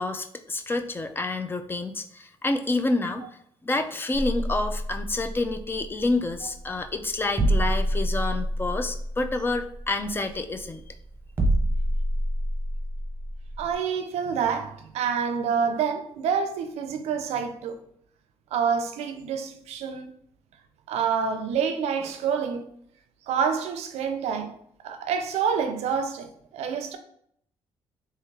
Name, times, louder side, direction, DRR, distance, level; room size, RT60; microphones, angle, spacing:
voice 1, 0.0-3.3 3.6-10.8, left 2 dB, 20° left, 0.4 m, -28 dB
sound 1, 4.1-13.7, right 1 dB, 20° right, 0.8 m, -28 dB
voice 2, 13.6-17.8 18.5-20.1 20.9-22.7 23.3-24.6 24.8-27.0, right 6 dB, 90° right, 0.5 m, -27 dB
3.4 x 3.2 x 3.2 m
cardioid pair, 120°, 11 cm